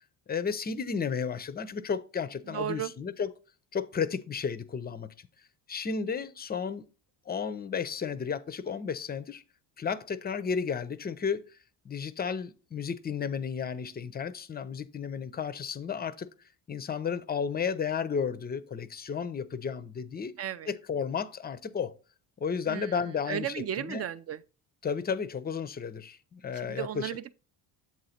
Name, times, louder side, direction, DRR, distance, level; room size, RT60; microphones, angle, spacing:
voice 1, 0.3-3.3 3.7-5.3 5.7-6.8 7.3-9.4 9.8-11.5 11.8-16.3 16.7-20.4 20.7-21.9 22.4-24.1 24.8-27.2, left 6 dB, 20° left, 0.5 m, -33 dB
voice 2, 2.5-2.9 20.4-20.7 22.7-22.9 23.3-24.4 26.6-27.3, right 10 dB, 35° right, 0.4 m, -34 dB
7.4 x 4.0 x 4.2 m
supercardioid pair, 75°, 48 cm